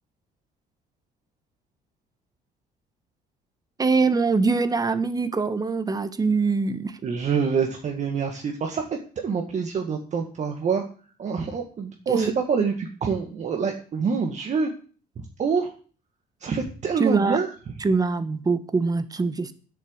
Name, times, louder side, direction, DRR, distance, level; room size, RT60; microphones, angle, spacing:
voice 1, 3.8-7.0 12.1-12.3 17.0-17.4 17.8-19.5, right 4 dB, 20° right, 12 dB, 1.4 m, -23 dB
voice 2, 7.0-8.8 9.2-10.8 11.2-14.7 15.4-15.7 16.4-17.5, right 5 dB, 45° right, 3 dB, 2.1 m, -26 dB
10.5 x 8.0 x 8.1 m, 0.40 s
cardioid pair, 110°, 17 cm